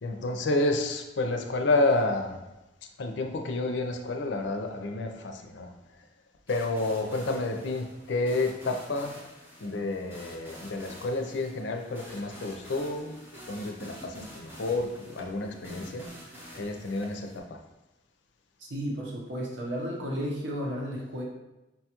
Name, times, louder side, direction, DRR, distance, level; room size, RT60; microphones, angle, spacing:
voice 1, 0.0-2.4 3.0-5.7 6.5-9.3 9.6-13.2 13.5-16.1 16.5-17.6, left 2 dB, 75° left, 4 dB, 0.5 m, -30 dB
sound 1, 6.5-17.4, equal, 10° right, 0.7 m, -47 dB
voice 2, 18.6-21.2, equal, 75° right, -2 dB, 0.8 m, -33 dB
5.5 x 2.3 x 2.9 m, 0.99 s
head